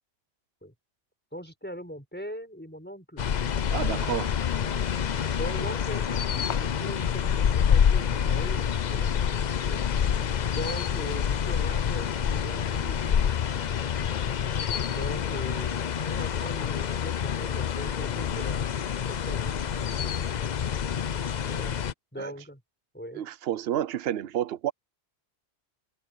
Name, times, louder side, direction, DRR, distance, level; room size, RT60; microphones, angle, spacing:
voice 1, 1.3-3.2 4.5-4.8 5.4-9.2 9.5-9.9 10.5-13.0 14.9-18.7 19.1-20.2 21.4-22.6 22.9-23.2, equal, 10° left, 5.1 m, -40 dB
sound 1, 3.2-21.9, left 8 dB, 50° left, 0.7 m, -27 dB
voice 2, 3.7-4.3 22.2-22.3 23.1-24.7, right 11 dB, 65° right, 0.9 m, -30 dB
omnidirectional pair, 1.1 m